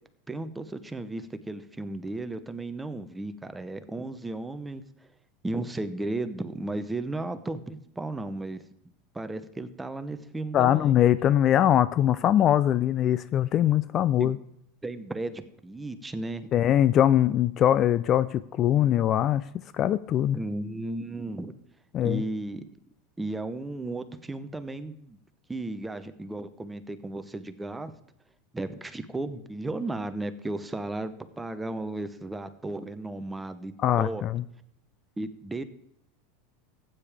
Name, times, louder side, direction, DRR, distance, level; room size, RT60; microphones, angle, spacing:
voice 1, 0.3-4.8 5.4-8.6 9.1-10.9 14.2-14.3 14.8-16.5 20.3-21.5 22.0-22.6 23.2-25.2 25.5-27.9 28.5-34.2 35.2-35.6, right 2 dB, 10° right, 11 dB, 0.8 m, -34 dB
voice 2, 10.5-14.4 16.5-19.4 19.7-20.4 21.9-22.2 33.8-34.4, left 11 dB, 35° left, 16 dB, 0.4 m, -22 dB
15.0 x 8.9 x 3.4 m, 0.75 s
supercardioid pair, 125°, 0 cm